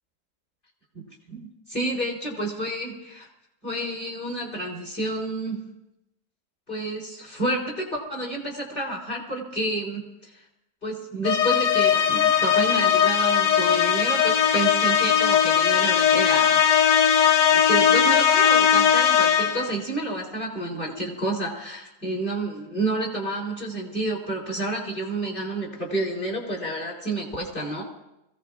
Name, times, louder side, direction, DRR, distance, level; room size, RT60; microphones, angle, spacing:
voice 1, 0.9-3.3 3.6-5.6 6.7-10.3 10.8-16.6 17.5-27.8, right 1 dB, 30° left, -3 dB, 4.0 m, -30 dB
sound 1, 11.3-19.8, left 8 dB, 75° left, 1.3 m, -19 dB
25.5 x 16.5 x 2.5 m, 0.88 s
omnidirectional pair, 1.9 m